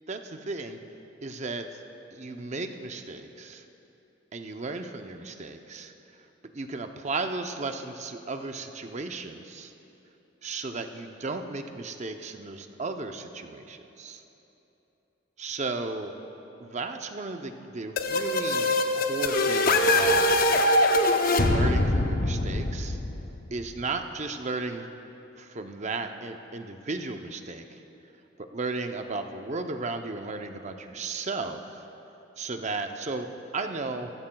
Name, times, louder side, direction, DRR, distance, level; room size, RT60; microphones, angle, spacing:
voice 1, 0.1-0.8 1.2-1.8 2.1-3.6 4.3-5.9 6.5-9.7 10.4-14.2 15.4-16.1 16.6-20.3 21.4-23.0 23.5-24.9 25.4-27.8 28.4-31.8 32.4-34.1, right 3 dB, 35° right, 6 dB, 0.6 m, -35 dB
sound 1, 18.0-23.6, left 1 dB, 50° left, 0.7 m, -23 dB
21.0 x 14.5 x 2.3 m, 3.0 s
head